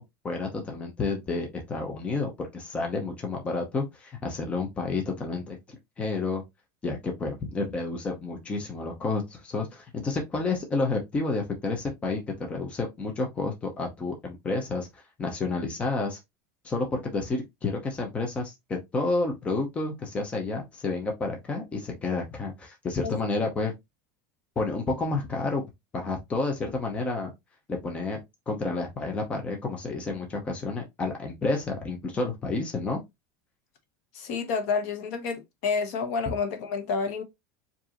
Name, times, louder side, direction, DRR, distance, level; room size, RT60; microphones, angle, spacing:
voice 1, 0.0-5.6 6.0-6.4 6.8-16.2 16.6-23.7 24.6-25.7 25.9-27.3 27.7-28.2 28.5-33.0 36.3-36.4, left 3 dB, 15° left, 0.7 m, -30 dB
voice 2, 34.1-37.2, left 5 dB, 55° left, 1.0 m, -29 dB
4.8 x 2.6 x 2.9 m
supercardioid pair, 175°, 9 cm